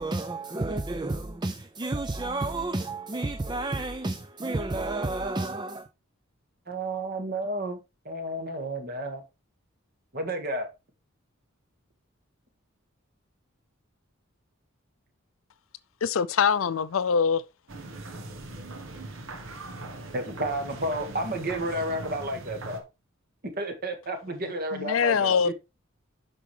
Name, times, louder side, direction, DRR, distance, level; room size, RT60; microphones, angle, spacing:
voice 1, 0.0-5.9, right 2 dB, 20° right, 0.5 m, -31 dB
voice 2, 6.7-7.8 8.1-9.2 10.1-10.7 20.1-22.8 23.6-25.5, right 1 dB, 45° right, 1.8 m, -31 dB
voice 3, 16.0-17.4 24.7-25.5, left 6 dB, 75° left, 0.5 m, -23 dB
sound 1, 17.7-22.8, right 2 dB, 70° right, 1.4 m, -40 dB
8.5 x 6.1 x 3.3 m
head